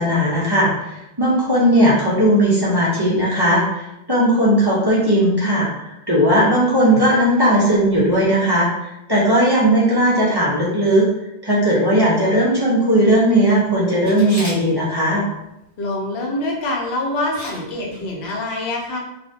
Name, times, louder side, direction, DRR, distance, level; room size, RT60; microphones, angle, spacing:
voice 1, 0.0-11.1 11.4-15.2, equal, 35° right, -7 dB, 0.4 m, -17 dB
Camera, 14.1-14.6 16.6-16.8 17.3-17.6 17.9-18.0, equal, 25° left, 0.8 m, -33 dB
voice 2, 15.8-19.0, left 1 dB, 80° left, -1 dB, 0.9 m, -25 dB
2.4 x 2.1 x 2.6 m, 0.87 s
omnidirectional pair, 1.1 m